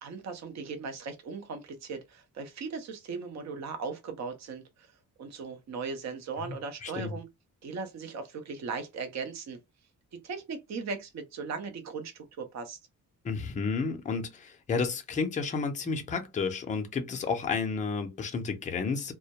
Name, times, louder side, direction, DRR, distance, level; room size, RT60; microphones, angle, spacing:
voice 1, 0.0-4.9 5.2-7.2 7.6-9.6 10.2-12.8, right 5 dB, 55° right, 0.6 m, -38 dB
voice 2, 6.4-7.1 13.2-19.1, left 5 dB, 25° left, 0.4 m, -31 dB
2.2 x 2.1 x 2.8 m
wide cardioid pair, 155°, 33 cm